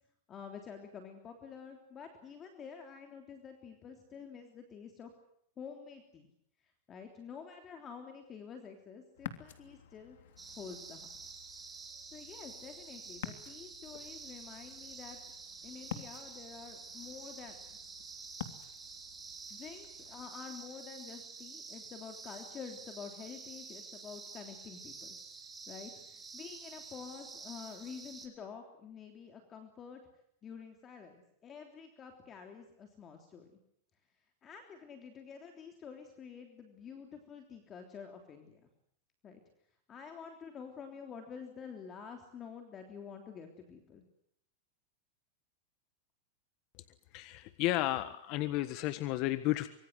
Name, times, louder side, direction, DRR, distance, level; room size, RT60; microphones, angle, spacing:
voice 1, 0.3-5.1 5.6-6.3 6.6-10.2 10.6-11.1 12.1-15.2 15.6-17.6 19.5-25.2 25.7-30.0 30.4-33.5 34.4-38.7 39.2-39.4 39.9-44.0, left 6 dB, 20° left, 5 dB, 3.3 m, -49 dB
Ocean, 9.2-20.3, left 10 dB, 75° left, 3.2 m, -50 dB
sound 1, 10.4-28.3, right 4 dB, 10° right, 4.0 m, -49 dB
voice 2, 47.1-49.7, left 16 dB, 40° left, 12 dB, 1.4 m, -32 dB
25.0 x 24.5 x 8.1 m, 0.72 s
supercardioid pair, 160°, 0 cm